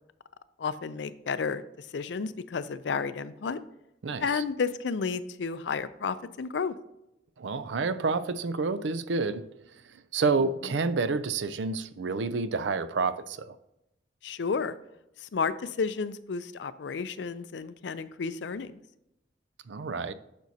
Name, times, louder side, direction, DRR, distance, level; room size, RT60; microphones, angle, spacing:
voice 1, 0.6-1.6 1.9-3.6 4.2-6.7 14.2-14.8 15.3-18.7, left 5 dB, 75° left, 0.5 m, -31 dB
voice 2, 4.0-4.4 7.4-9.5 10.1-13.6 19.7-20.1, right 4 dB, 80° right, 0.5 m, -29 dB
10.5 x 6.0 x 2.8 m
head